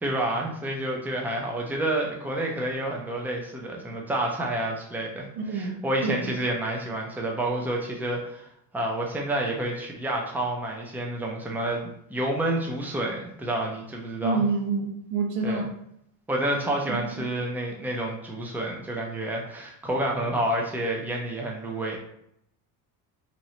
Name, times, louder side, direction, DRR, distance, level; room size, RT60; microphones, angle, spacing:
voice 1, 0.0-8.5 8.7-14.5 15.4-15.7 16.3-22.0, right 1 dB, 5° right, -1 dB, 0.6 m, -29 dB
voice 2, 5.5-5.8 6.0-6.3 14.2-15.7 16.9-17.3, right 4 dB, 85° right, 2 dB, 0.9 m, -27 dB
3.1 x 2.6 x 4.1 m, 0.74 s
cardioid pair, 135°, 37 cm